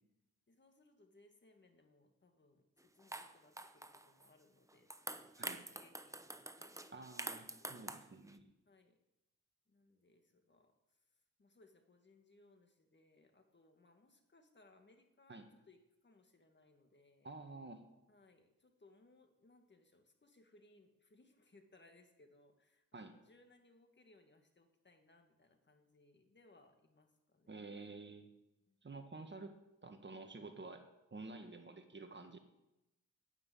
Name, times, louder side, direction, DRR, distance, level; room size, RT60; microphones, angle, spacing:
voice 1, 0.5-6.7 7.0-7.2 7.5-7.9 8.7-9.0 9.7-17.3 18.1-27.7 28.7-28.8, left 2 dB, 30° left, 5 dB, 1.8 m, -68 dB
sound 1, 2.8-2.9 3.1-4.3 4.7-8.4, right 2 dB, 10° right, 0.8 m, -47 dB
voice 2, 6.9-8.5 15.3-15.5 17.2-17.8 22.9-23.1 27.5-28.3 28.8-29.5 29.8-30.8 31.1-32.4, right 3 dB, 30° right, 6 dB, 1.6 m, -50 dB
9.8 x 9.5 x 8.5 m, 0.94 s
cardioid pair, 90°, 34 cm